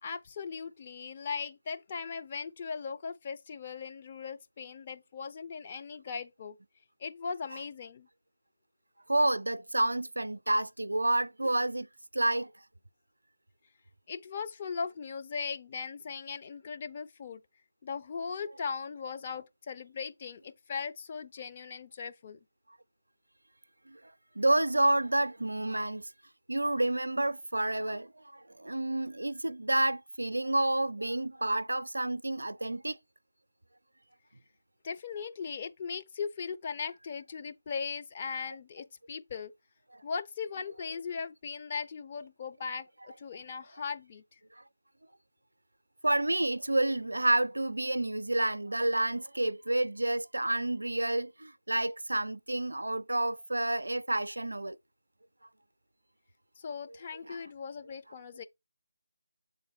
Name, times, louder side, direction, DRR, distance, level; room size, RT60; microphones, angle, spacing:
voice 1, 0.0-6.6 7.0-8.1 14.1-17.4 17.8-22.4 34.8-39.5 40.0-44.4 56.6-58.4, left 5 dB, 30° left, 0.6 m, -38 dB
voice 2, 9.1-11.9 12.1-12.5 23.9-26.1 26.5-33.0 38.5-38.6 39.9-40.0 44.6-44.7 46.0-54.8 57.3-57.4, right 1 dB, 70° right, 0.4 m, -29 dB
7.9 x 3.8 x 4.7 m
figure-of-eight pair, 155°, 0 cm